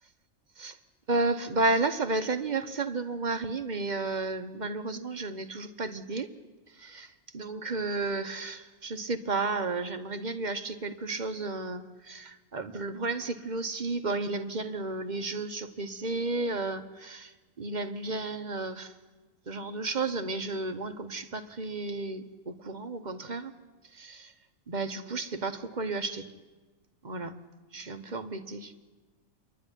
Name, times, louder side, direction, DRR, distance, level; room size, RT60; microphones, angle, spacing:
voice 1, 1.1-6.3 6.7-6.9 7.3-18.9 19.5-23.5 23.9-24.3 24.7-26.3 27.0-27.3 27.7-28.7, right 3 dB, 35° right, 9 dB, 1.1 m, -32 dB
28.0 x 11.5 x 9.9 m, 1.3 s
omnidirectional pair, 1.4 m